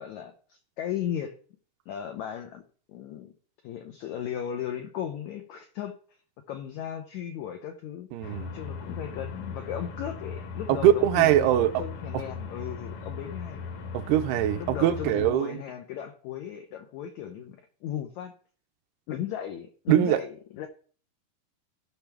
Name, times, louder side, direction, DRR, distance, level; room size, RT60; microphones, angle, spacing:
voice 1, 0.0-1.3 1.9-2.6 2.9-3.3 3.6-5.9 6.5-13.6 14.5-18.3 19.1-20.7, left 10 dB, 90° left, 1.6 m, -36 dB
voice 2, 8.1-8.5 10.7-11.9 13.9-15.6 19.9-20.2, right 12 dB, 85° right, 2.7 m, -22 dB
sound 1, 8.2-15.3, left 5 dB, 70° left, 2.6 m, -38 dB
16.5 x 6.0 x 3.4 m
omnidirectional pair, 4.4 m